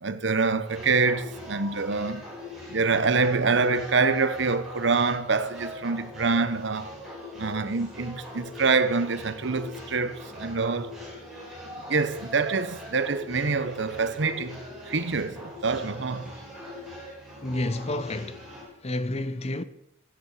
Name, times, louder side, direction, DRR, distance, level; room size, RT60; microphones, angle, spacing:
voice 1, 0.0-2.2 2.7-6.9 7.4-11.0 11.9-14.6 14.9-16.3, right 4 dB, 65° right, 0.9 m, -26 dB
sound 1, 0.6-18.6, left 1 dB, ahead, 5.4 m, -41 dB
voice 2, 17.4-18.4 18.8-19.6, left 1 dB, 35° left, 0.7 m, -30 dB
14.5 x 9.4 x 6.5 m
head